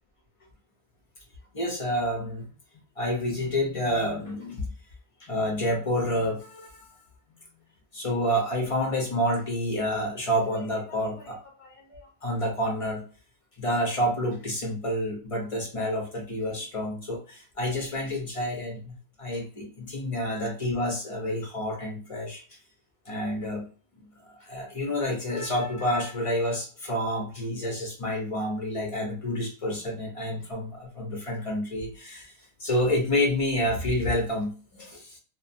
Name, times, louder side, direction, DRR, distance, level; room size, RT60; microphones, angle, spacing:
voice 1, 1.5-2.4 3.0-4.6 5.2-6.9 7.9-13.0 13.6-22.4 23.1-23.7 24.4-32.3 32.6-35.2, equal, 40° left, 0 dB, 0.5 m, -29 dB
2.6 x 2.1 x 2.5 m, 0.38 s
omnidirectional pair, 1.4 m